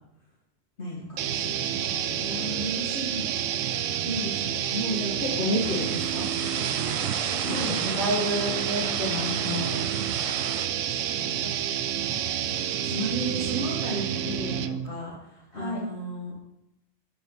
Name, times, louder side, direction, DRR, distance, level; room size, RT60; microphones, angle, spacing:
voice 1, 0.8-3.3 3.6-6.9 7.5-8.2 9.2-9.4 10.6-10.7 11.2-11.5 12.8-16.3, equal, 60° left, -6 dB, 2.2 m, -34 dB
sound 1, 1.2-14.9, right 10 dB, 85° right, 0.9 m, -29 dB
sound 2, 5.6-10.7, right 5 dB, 45° right, 0.5 m, -36 dB
voice 2, 7.4-9.9 15.5-15.8, equal, 30° left, -6 dB, 3.8 m, -30 dB
8.9 x 7.7 x 4.0 m, 0.84 s
omnidirectional pair, 1.3 m